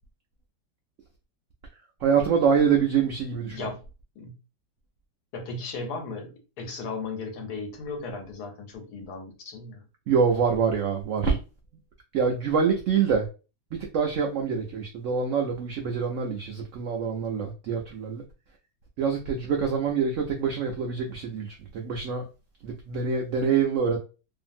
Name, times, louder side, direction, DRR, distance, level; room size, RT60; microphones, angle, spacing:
voice 1, 2.0-3.6 10.1-11.4 12.1-13.3 13.7-18.2 19.0-22.2 22.6-24.0, right 6 dB, 90° right, 0.6 m, -25 dB
voice 2, 3.4-3.8 4.2-4.4 5.3-9.8, left 3 dB, 70° left, 1.2 m, -36 dB
2.7 x 2.5 x 2.5 m
omnidirectional pair, 1.9 m